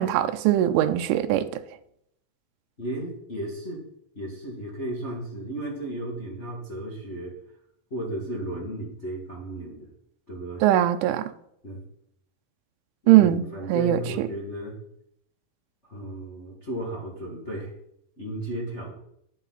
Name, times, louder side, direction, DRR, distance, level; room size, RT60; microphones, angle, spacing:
voice 1, 0.0-1.6 10.6-11.3 13.1-14.3, right 12 dB, 85° right, 3.2 m, -21 dB
voice 2, 2.8-3.8 4.1-7.4 7.9-9.9 10.3-10.6 11.6-11.8 13.0-14.8 15.9-17.7 18.2-18.9, right 1 dB, 40° left, 0.9 m, -34 dB
11.0 x 10.0 x 4.1 m
omnidirectional pair, 5.5 m